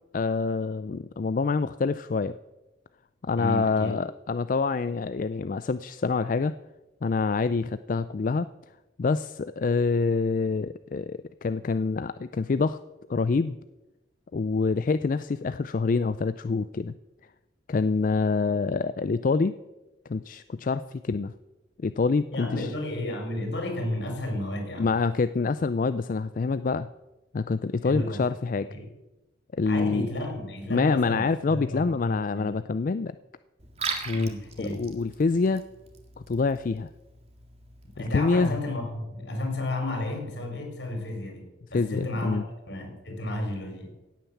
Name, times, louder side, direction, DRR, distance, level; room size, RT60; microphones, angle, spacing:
voice 1, 0.1-2.4 3.2-6.5 7.0-8.5 9.0-12.8 13.1-13.6 14.3-16.9 17.7-19.6 20.1-21.3 21.8-22.7 24.8-26.9 27.3-28.7 29.6-30.1 30.7-33.1 34.1-34.3 34.6-35.6 36.3-36.9 38.0-38.5 41.7-42.5, left 4 dB, 45° left, 14 dB, 0.4 m, -26 dB
voice 2, 3.4-3.9 22.3-24.9 27.8-28.2 28.7-28.9 29.6-32.5 34.1-34.9 37.9-42.4 42.7-43.9, left 1 dB, 75° left, 3 dB, 4.8 m, -32 dB
Liquid, 33.6-38.6, right 5 dB, 35° right, 2.0 m, -40 dB
16.5 x 9.0 x 7.1 m, 1.0 s
head